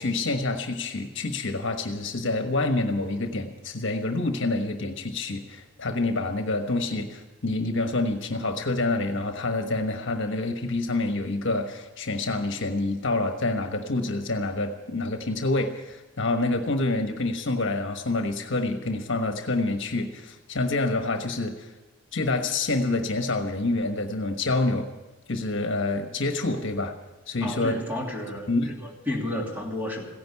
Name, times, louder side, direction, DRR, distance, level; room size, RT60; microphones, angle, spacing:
voice 1, 0.0-21.7 22.1-24.9 25.3-26.9 27.3-27.8 28.5-28.8, left 2 dB, 60° left, 6 dB, 1.3 m, -27 dB
voice 2, 27.4-30.1, left 1 dB, 10° right, -1 dB, 2.8 m, -32 dB
16.0 x 10.5 x 8.4 m, 1.1 s
head